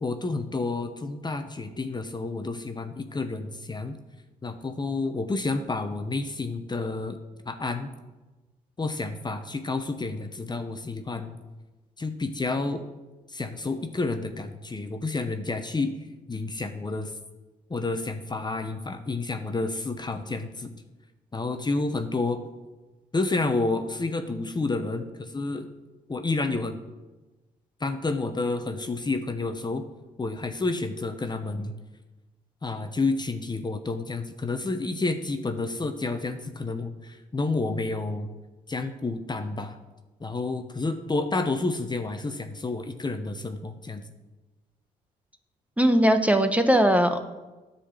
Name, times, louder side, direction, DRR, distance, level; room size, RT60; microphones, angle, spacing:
voice 1, 0.0-4.0 4.4-7.2 7.5-7.9 8.8-11.4 12.0-12.8 13.3-15.9 16.3-17.1 17.7-20.7 21.3-22.4 23.1-25.7 26.1-26.8 27.8-29.8 30.2-31.7 32.6-38.3 38.7-39.8 40.2-44.0, left 3 dB, 25° left, 7 dB, 0.9 m, -30 dB
voice 2, 45.8-47.2, equal, 10° right, 7 dB, 1.0 m, -20 dB
9.9 x 4.3 x 7.3 m, 1.1 s
supercardioid pair, 55°, 17 cm